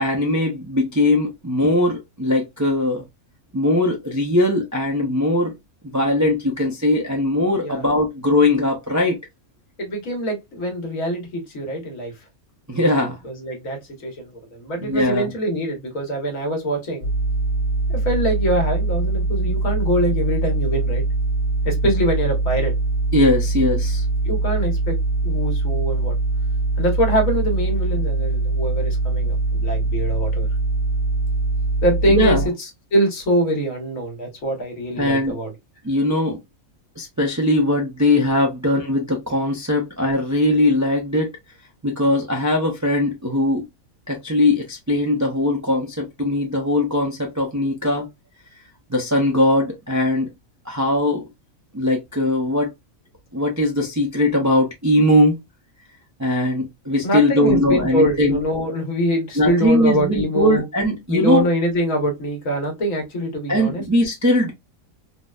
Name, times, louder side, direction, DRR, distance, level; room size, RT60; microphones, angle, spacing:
voice 1, 0.0-3.0 3.5-5.5 5.8-9.2 12.7-13.2 14.8-15.3 23.1-24.0 32.1-32.5 35.0-35.4 35.8-36.4 37.0-41.3 41.8-43.6 44.1-48.1 48.9-50.3 50.7-51.3 51.7-52.7 53.3-55.4 56.2-58.4 59.4-61.5 63.5-64.5, left 1 dB, 25° right, 0.4 m, -20 dB
voice 2, 9.8-12.1 13.2-17.1 17.9-21.0 21.6-22.7 24.2-25.0 25.2-26.1 26.8-30.5 31.8-35.5 57.0-60.7 61.1-63.9, equal, 70° left, 1.5 m, -24 dB
sound 1, 17.0-32.5, right 3 dB, 50° left, 1.8 m, -22 dB
3.8 x 2.1 x 2.3 m
omnidirectional pair, 1.5 m